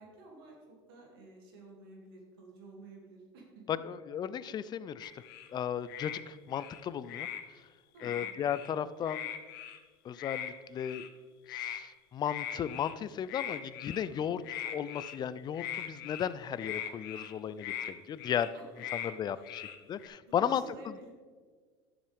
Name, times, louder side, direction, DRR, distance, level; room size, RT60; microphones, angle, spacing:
voice 1, 0.0-3.6 7.9-8.3 14.1-14.4 17.4-17.5 18.5-18.6 19.3-19.5 20.3-21.1, right 2 dB, 80° right, 0 dB, 2.7 m, -52 dB
voice 2, 3.7-5.1 5.5-7.3 8.0-9.3 10.0-11.0 11.5-18.5 18.9-20.9, left 9 dB, 35° left, 16 dB, 0.5 m, -35 dB
sound 1, 5.0-5.5 5.9-6.2 6.5-7.4 8.0-8.7 9.0-9.8 10.2-10.5 10.8-11.1 11.5-11.8 12.2-12.9 13.3-14.1 14.4-15.2 15.5-16.3 16.6-17.3 17.6-17.9 18.2-18.5 18.8-19.1 19.4-20.1, left 10 dB, 80° left, 0.9 m, -40 dB
11.5 x 7.4 x 3.6 m, 1.6 s
supercardioid pair, 90°, 12 cm